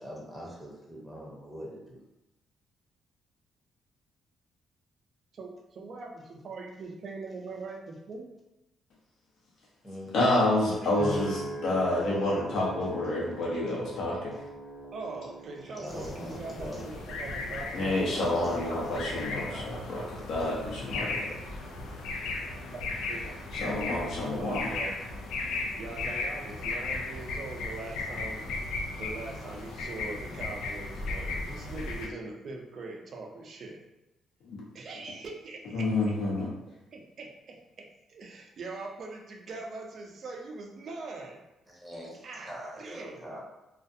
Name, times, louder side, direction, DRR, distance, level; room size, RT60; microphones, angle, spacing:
voice 1, 0.0-2.0 9.8-10.2 15.8-16.8 18.2-19.7 41.7-43.4, equal, ahead, -4 dB, 0.8 m, -42 dB
voice 2, 5.3-8.3 14.9-18.2 18.5-18.7 22.7-22.8 23.1-23.4 24.3-25.0 25.8-28.4 29.0-33.8 34.7-35.9 36.7-41.4 42.2-43.4, right 3 dB, 55° right, 1 dB, 0.5 m, -42 dB
voice 3, 10.1-14.3 17.7-21.1 23.5-24.8 34.4-34.6 35.7-36.5, left 1 dB, 70° left, -4 dB, 0.8 m, -28 dB
sound 1, 11.0-25.5 26.0-26.4, equal, 45° left, 1.1 m, -44 dB
sound 2, 15.9-32.1, left 3 dB, 90° left, 0.4 m, -36 dB
2.4 x 2.3 x 2.6 m, 0.96 s
cardioid pair, 90°, 0 cm